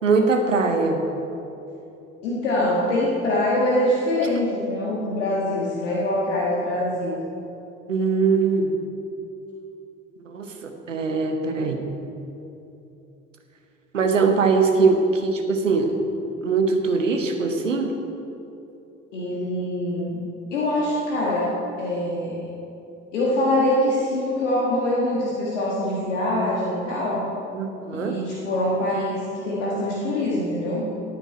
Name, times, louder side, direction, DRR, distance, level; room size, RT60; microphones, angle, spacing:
voice 1, 0.0-1.0 7.9-8.7 10.3-11.9 13.9-16.0 16.4-17.9 27.5-28.2, right 4 dB, 85° right, 5 dB, 1.0 m, -21 dB
voice 2, 2.2-7.2 19.1-20.2 20.5-22.4 23.1-27.3 27.9-30.9, left 1 dB, 75° left, -5 dB, 1.7 m, -24 dB
17.0 x 9.1 x 4.3 m, 2.9 s
figure-of-eight pair, 55°, 37 cm